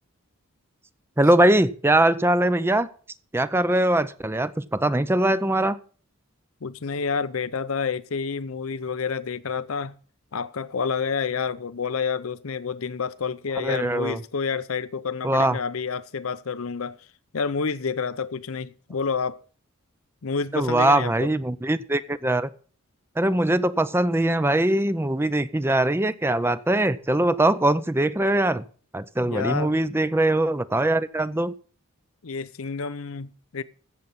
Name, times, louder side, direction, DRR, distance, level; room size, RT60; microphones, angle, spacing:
voice 1, 1.2-2.9 3.3-5.8 13.6-14.2 15.2-15.6 20.5-22.5 23.2-28.6 28.9-31.5, right 1 dB, 10° right, 0.5 m, -22 dB
voice 2, 6.6-10.0 10.3-17.0 17.3-19.4 20.2-21.3 29.2-29.8 32.2-33.6, left 5 dB, 70° left, 0.7 m, -29 dB
15.5 x 7.2 x 5.5 m
head